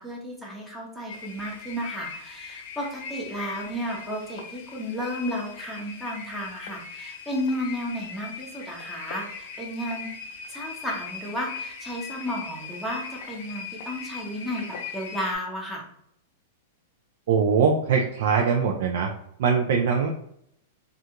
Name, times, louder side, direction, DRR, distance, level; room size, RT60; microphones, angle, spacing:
voice 1, 0.0-10.1 10.5-15.9, equal, ahead, -3 dB, 0.8 m, -33 dB
sound 1, 1.1-15.4, left 5 dB, 60° left, 0.5 m, -40 dB
voice 2, 17.3-19.1 19.4-20.1, right 6 dB, 65° right, 1 dB, 0.4 m, -22 dB
2.4 x 2.3 x 2.9 m, 0.70 s
hypercardioid pair, 140°, 0 cm